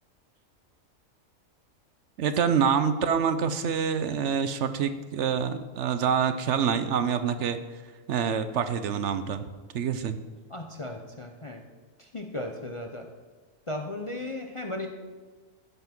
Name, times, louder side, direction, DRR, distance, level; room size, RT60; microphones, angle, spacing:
voice 1, 2.2-7.6 8.1-9.4 9.7-10.2, right 7 dB, 65° right, 11 dB, 0.9 m, -26 dB
voice 2, 10.5-11.6 12.0-13.1 13.7-14.9, left 2 dB, 30° left, 3 dB, 0.6 m, -36 dB
13.5 x 5.8 x 6.0 m, 1.3 s
omnidirectional pair, 1.4 m